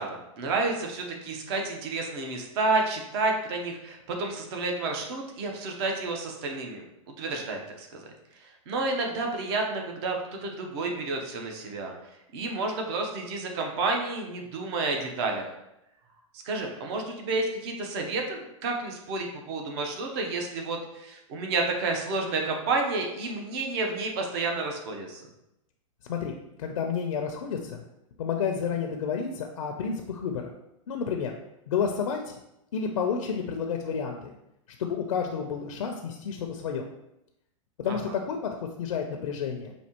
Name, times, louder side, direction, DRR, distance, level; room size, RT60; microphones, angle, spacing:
voice 1, 0.0-6.8 7.2-8.0 8.4-11.9 12.3-15.5 16.4-25.2 37.9-38.1, right 3 dB, 50° right, 2 dB, 0.8 m, -30 dB
voice 2, 26.1-27.8 28.2-30.5 30.9-31.3 31.7-32.4 32.7-34.3 34.8-36.9 37.8-39.7, left 6 dB, 85° left, 3 dB, 0.5 m, -30 dB
5.3 x 2.7 x 2.9 m, 0.86 s
hypercardioid pair, 140°, 18 cm